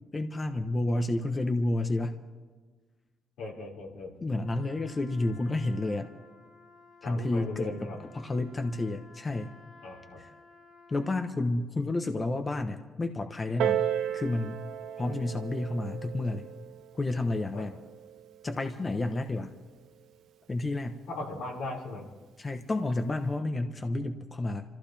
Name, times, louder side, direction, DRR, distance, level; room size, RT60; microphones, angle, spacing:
voice 1, 0.1-2.2 4.2-6.1 7.0-9.6 10.2-10.3 10.9-14.6 15.0-16.5 16.9-17.8 18.4-19.5 20.5-21.0 22.4-24.6, left 2 dB, 30° left, 6 dB, 1.1 m, -30 dB
voice 2, 3.4-4.1 7.0-8.0 9.8-10.2 15.0-15.2 17.5-17.7 21.1-22.1, left 2 dB, 85° left, -3 dB, 5.1 m, -38 dB
Trumpet, 4.4-11.4, left 3 dB, 60° left, 4.5 m, -55 dB
Piano, 13.6-18.8 19.6-19.7, right 10 dB, 80° right, 0.9 m, -34 dB
26.0 x 15.0 x 3.4 m, 1.4 s
cardioid pair, 90°, 0 cm